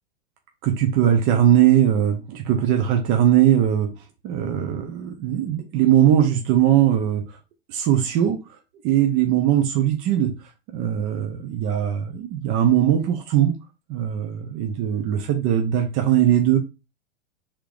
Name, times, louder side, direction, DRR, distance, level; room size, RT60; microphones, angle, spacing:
voice 1, 0.6-4.0 4.2-7.4 7.7-8.6 8.8-10.3 10.7-13.6 13.9-16.6, right 10 dB, 35° right, 0.7 m, -20 dB
4.4 x 3.6 x 2.5 m
hypercardioid pair, 110°, 36 cm